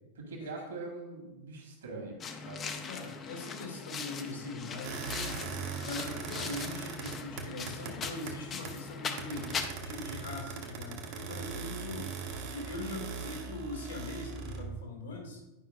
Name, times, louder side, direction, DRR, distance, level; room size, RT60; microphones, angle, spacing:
voice 1, 0.1-2.7, right 3 dB, 65° right, 1 dB, 2.0 m, -43 dB
sound 1, 2.2-9.7, left 5 dB, 25° left, 0.6 m, -40 dB
voice 2, 2.9-5.1 5.8-9.5 9.8-12.1 12.5-15.4, left 2 dB, 70° left, -1 dB, 2.3 m, -41 dB
sound 2, 4.8-8.9 9.2-14.8, right 5 dB, 45° right, 1.1 m, -40 dB
10.0 x 5.5 x 2.6 m, 1.0 s
figure-of-eight pair, 90°, 0 cm